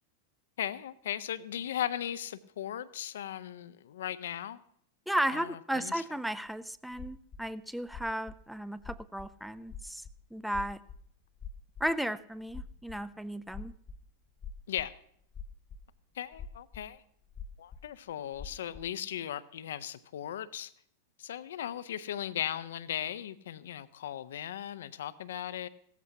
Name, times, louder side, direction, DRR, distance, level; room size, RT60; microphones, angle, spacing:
voice 1, 0.6-4.6 5.3-6.0 14.7-14.9 16.1-17.0 17.6-20.7 21.2-25.7, left 10 dB, 60° left, 15 dB, 0.5 m, -37 dB
voice 2, 5.1-10.0 10.3-10.8 11.8-13.7, right 1 dB, ahead, 15 dB, 0.5 m, -34 dB
sound 1, 6.5-6.6 6.9-7.5 7.9-10.2 10.5-11.0 11.4-11.9 12.3-14.0 14.3-15.0 15.2-16.0 16.3-16.9 17.2-17.8 18.1-18.9, left 5 dB, 25° left, 0.8 m, -45 dB
17.0 x 14.0 x 2.9 m, 0.67 s
figure-of-eight pair, 90°, 0 cm